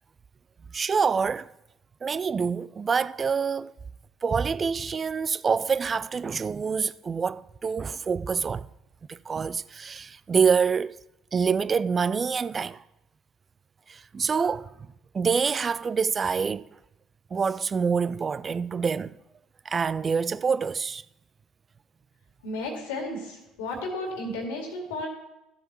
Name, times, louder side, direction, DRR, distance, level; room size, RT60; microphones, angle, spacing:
voice 1, 0.7-1.5 2.0-3.7 4.2-8.7 9.1-11.0 11.3-12.8 13.9-14.7 15.1-16.6 17.3-19.2 19.7-21.0, right 6 dB, 35° right, 0.3 m, -26 dB
voice 2, 22.4-25.1, left 2 dB, 70° left, 2.1 m, -33 dB
15.0 x 7.7 x 3.0 m
figure-of-eight pair, 55°, 0 cm